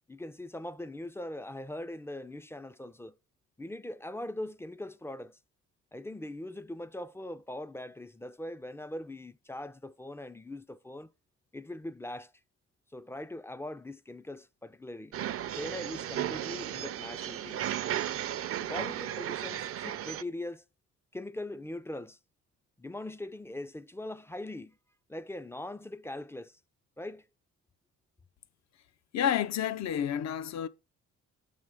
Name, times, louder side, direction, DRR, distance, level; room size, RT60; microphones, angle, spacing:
voice 1, 0.1-3.2 3.6-5.4 5.9-11.1 11.5-12.3 12.9-17.7 18.6-20.6 21.1-22.2 22.8-24.8 25.1-26.6 27.0-27.2, left 1 dB, 10° left, 0.3 m, -41 dB
sound 1, 15.1-20.2, right 11 dB, 50° right, 0.5 m, -35 dB
voice 2, 29.1-30.7, left 9 dB, 65° left, 0.7 m, -30 dB
7.3 x 3.6 x 6.2 m
cardioid pair, 90°, 30 cm